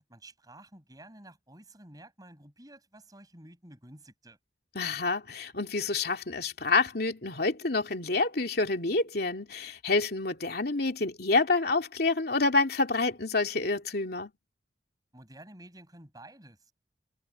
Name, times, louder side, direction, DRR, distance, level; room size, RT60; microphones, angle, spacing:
voice 1, 0.0-4.4 15.1-16.7, right 1 dB, 20° right, 7.7 m, -51 dB
voice 2, 4.7-14.3, left 3 dB, 60° left, 2.8 m, -28 dB
head